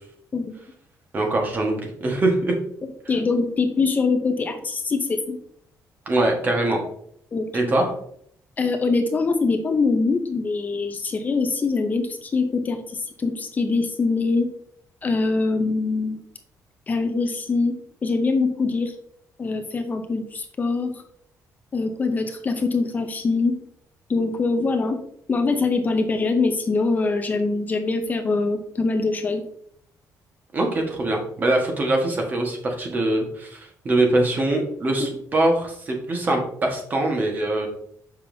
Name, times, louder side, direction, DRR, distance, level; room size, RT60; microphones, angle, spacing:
voice 1, 1.1-2.5 6.0-6.8 7.5-7.9 30.5-37.7, right 2 dB, 30° right, 2 dB, 1.4 m, -23 dB
voice 2, 3.1-5.4 7.3-7.7 8.6-14.5 15.0-16.2 16.9-18.9 19.4-21.0 21.7-23.6 24.1-25.0 25.3-29.4 35.0-35.1, left 3 dB, 25° left, 6 dB, 0.6 m, -23 dB
7.1 x 5.5 x 2.7 m, 0.65 s
cardioid pair, 170°, 6 cm